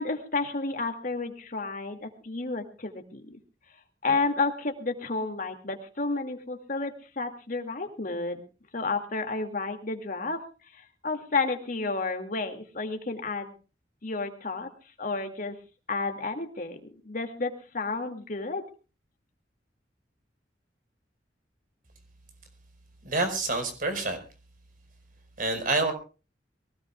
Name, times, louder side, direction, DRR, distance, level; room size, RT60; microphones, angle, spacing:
voice 1, 0.0-3.4 4.0-8.4 8.7-10.4 10.7-13.5 14.0-14.7 15.0-15.6 15.9-16.8 17.0-18.6, left 3 dB, 50° left, 5 dB, 2.4 m, -31 dB
voice 2, 23.0-24.2 25.4-25.9, right 2 dB, 50° right, 6 dB, 4.9 m, -27 dB
23.0 x 17.5 x 2.4 m, 0.35 s
head